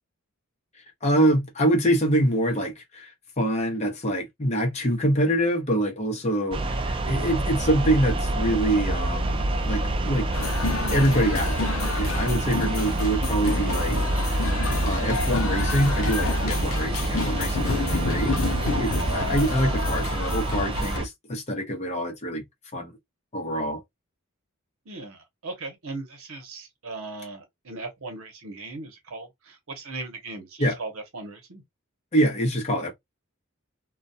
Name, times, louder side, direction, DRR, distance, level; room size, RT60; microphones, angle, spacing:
voice 1, 1.0-10.3 10.9-14.5 14.8-22.4 22.7-22.9 23.3-23.8 30.6-30.8 32.1-32.9, right 1 dB, 30° left, 0.7 m, -25 dB
sound 1, 6.5-21.1, right 1 dB, 25° right, 0.3 m, -27 dB
sound 2, 10.3-21.0, left 3 dB, 70° left, 0.6 m, -30 dB
voice 2, 24.9-31.6, right 3 dB, 75° right, 0.8 m, -38 dB
2.2 x 2.2 x 2.6 m
head